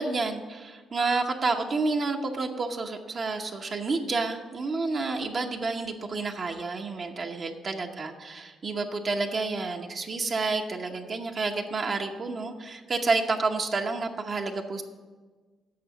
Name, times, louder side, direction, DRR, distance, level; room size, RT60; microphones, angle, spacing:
voice 1, 0.0-14.8, right 3 dB, 45° right, 3 dB, 0.9 m, -29 dB
8.5 x 6.2 x 7.4 m, 1.4 s
cardioid pair, 90°, 0 cm